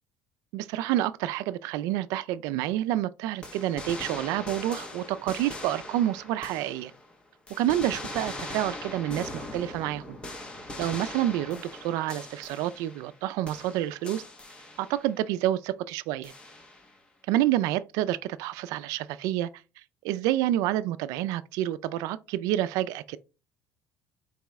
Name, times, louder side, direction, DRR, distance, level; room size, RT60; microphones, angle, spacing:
voice 1, 0.5-6.9 7.5-10.2 10.8-14.2 14.8-16.3 17.3-19.5 20.0-23.2, right 13 dB, 75° right, 0.4 m, -28 dB
sound 1, 3.4-7.1 7.5-13.2 13.5-15.1 16.2-17.0, left 2 dB, 15° left, 0.7 m, -41 dB
4.8 x 3.5 x 3.1 m
cardioid pair, 155°, 6 cm